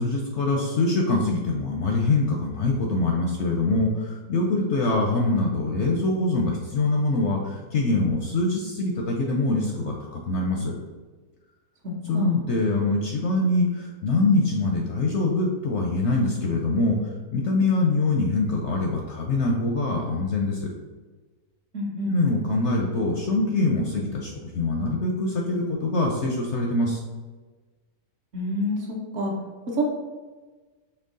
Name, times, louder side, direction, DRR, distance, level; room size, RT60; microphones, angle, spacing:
voice 1, 0.0-10.7 12.1-17.0 17.3-20.7 22.0-27.0, left 2 dB, 65° left, 0 dB, 0.7 m, -24 dB
voice 2, 11.8-12.4 21.7-22.1 28.3-28.8 29.1-29.3 29.7-29.8, equal, 55° right, -2 dB, 1.2 m, -27 dB
4.5 x 2.9 x 3.8 m, 1.3 s
omnidirectional pair, 1.6 m